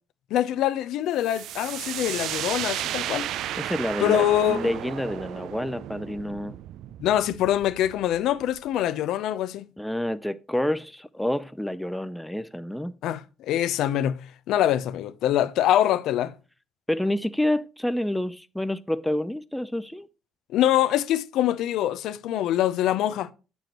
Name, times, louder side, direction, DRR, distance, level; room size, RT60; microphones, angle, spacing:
voice 1, 0.3-3.3 4.0-4.7 7.0-9.7 13.0-16.3 20.5-23.3, left 12 dB, 75° left, 0.5 m, -24 dB
sound 1, 1.2-8.8, right 12 dB, 70° right, 0.3 m, -34 dB
voice 2, 3.6-6.6 9.8-12.9 16.9-20.1, left 1 dB, 5° left, 0.4 m, -28 dB
7.6 x 6.9 x 2.9 m
cardioid pair, 110°, 0 cm